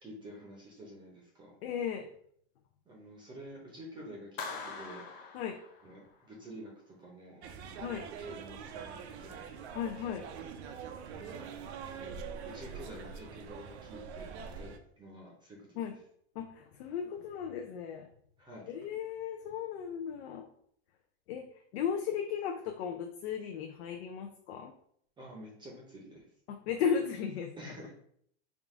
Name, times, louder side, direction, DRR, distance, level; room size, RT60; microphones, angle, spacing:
voice 1, 0.0-1.5 2.9-5.1 5.8-7.9 8.2-9.5 11.1-11.5 11.9-14.3 14.5-15.7 18.4-18.7 25.2-26.2 27.6-27.9, right 1 dB, 15° right, -2 dB, 0.6 m, -49 dB
voice 2, 1.6-2.1 5.3-5.6 7.8-8.0 9.7-10.3 15.8-15.9 16.4-18.1 18.7-20.5 21.3-21.5 21.7-24.7 26.5-27.7, left 7 dB, 75° left, 3 dB, 0.5 m, -35 dB
Clapping, 4.4-6.2, left 5 dB, 30° left, 0.4 m, -43 dB
sound 1, 7.4-14.8, right 6 dB, 85° right, 0.6 m, -44 dB
3.6 x 2.4 x 3.6 m, 0.66 s
supercardioid pair, 155°, 32 cm